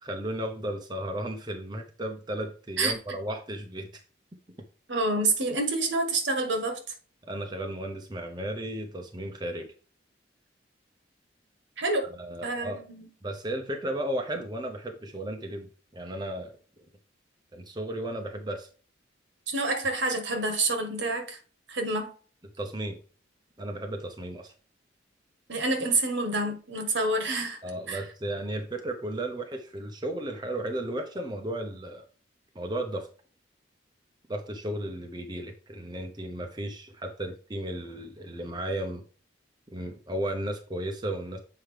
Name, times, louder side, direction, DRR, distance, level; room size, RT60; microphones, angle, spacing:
voice 1, 0.0-4.0 7.3-9.7 12.0-12.8 13.2-16.6 17.5-18.7 22.6-23.0 23.6-24.5 27.6-32.1 32.5-33.1 34.3-39.0 39.7-41.4, right 1 dB, 20° right, 0.7 m, -34 dB
voice 2, 4.9-6.8 11.8-12.1 12.4-13.1 19.5-21.4 21.7-22.1 25.5-27.6 27.9-28.0, right 2 dB, 70° right, 1.4 m, -27 dB
7.7 x 4.5 x 3.3 m
head